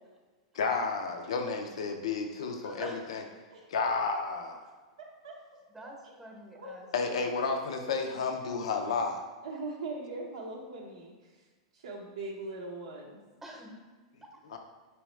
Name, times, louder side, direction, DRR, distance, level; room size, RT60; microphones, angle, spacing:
voice 1, 0.5-3.2 3.7-4.6 6.9-9.2 14.5-14.6, left 4 dB, 80° left, 4 dB, 0.5 m, -31 dB
voice 2, 2.6-3.0 5.7-7.4 13.4-13.8 14.2-14.6, right 1 dB, 10° right, 1 dB, 0.8 m, -47 dB
voice 3, 5.2-5.6 6.5-6.9 9.4-11.1 11.8-13.2, right 2 dB, 80° right, -3 dB, 0.6 m, -40 dB
4.8 x 3.0 x 3.1 m, 1.3 s
hypercardioid pair, 115°, 3 cm